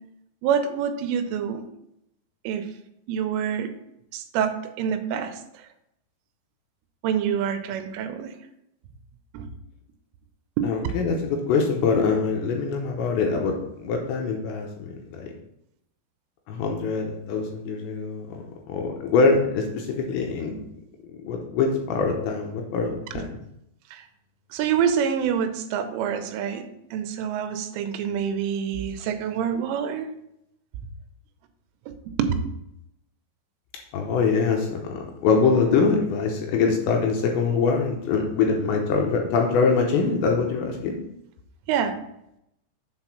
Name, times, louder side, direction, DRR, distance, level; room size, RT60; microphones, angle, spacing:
voice 1, 0.4-1.6 2.4-2.7 3.1-3.7 4.1-5.4 7.0-8.3 9.3-9.5 10.6-10.7 23.9-24.0 24.5-30.1 32.1-32.3 41.7-42.0, right 8 dB, 90° right, 8 dB, 3.2 m, -26 dB
voice 2, 10.6-15.3 16.5-20.6 21.2-23.4 33.9-41.0, left 4 dB, 80° left, 2 dB, 2.8 m, -24 dB
8.0 x 4.2 x 5.8 m, 0.80 s
omnidirectional pair, 5.7 m